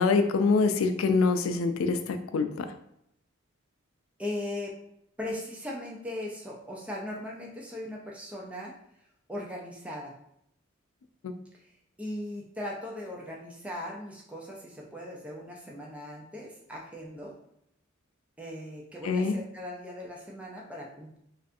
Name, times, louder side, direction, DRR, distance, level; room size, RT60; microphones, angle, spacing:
voice 1, 0.0-2.7 11.2-11.3 19.0-19.3, left 4 dB, 85° left, 8 dB, 0.3 m, -25 dB
voice 2, 4.2-4.8 5.2-8.7 9.3-10.1 12.0-17.3 18.4-21.2, left 1 dB, 5° right, -2 dB, 0.4 m, -38 dB
3.2 x 2.5 x 2.5 m, 0.75 s
head